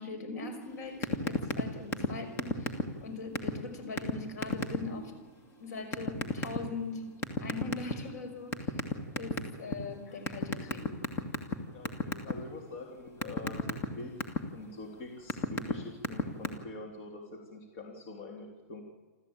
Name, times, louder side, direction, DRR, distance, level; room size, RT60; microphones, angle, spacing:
voice 1, 0.0-5.2 5.6-8.8 9.2-11.0, left 3 dB, 75° left, 7 dB, 5.9 m, -41 dB
sound 1, 1.0-1.6 1.9-2.1 2.4-3.0 3.3-3.5 4.0-4.1 4.4-4.8 5.9-6.6 7.2-8.1 8.5-9.7 10.3-11.5 11.8-12.3 12.7-14.4 15.0-15.7 16.0-16.5, left 2 dB, 25° left, 2.2 m, -30 dB
voice 2, 11.7-14.1 14.5-18.8, left 2 dB, 45° left, 1 dB, 3.6 m, -45 dB
28.5 x 14.0 x 8.9 m, 1.3 s
hypercardioid pair, 160°, 9 cm